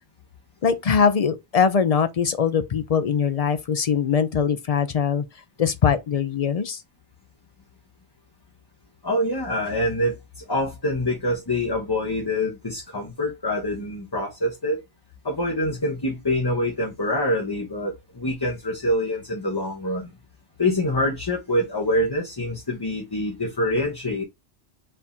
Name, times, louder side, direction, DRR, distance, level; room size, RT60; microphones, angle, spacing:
voice 1, 0.6-5.2 5.6-6.8, left 6 dB, 55° left, 0.4 m, -22 dB
voice 2, 9.0-14.8 15.2-20.1 20.6-24.2, left 1 dB, 25° left, 0.9 m, -25 dB
4.3 x 2.8 x 3.5 m
omnidirectional pair, 1.1 m